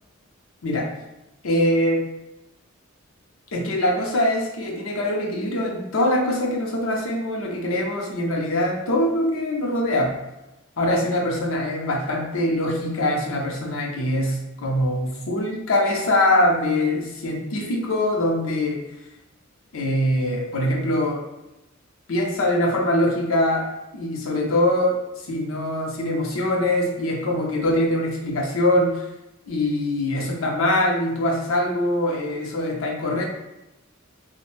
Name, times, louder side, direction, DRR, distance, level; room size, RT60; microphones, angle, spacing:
voice 1, 1.4-2.0 3.5-10.1 10.8-18.8 19.7-21.2 22.1-23.7 23.9-29.0 29.5-33.3, left 1 dB, 70° left, 0 dB, 0.6 m, -23 dB
2.4 x 2.1 x 3.2 m, 0.93 s
head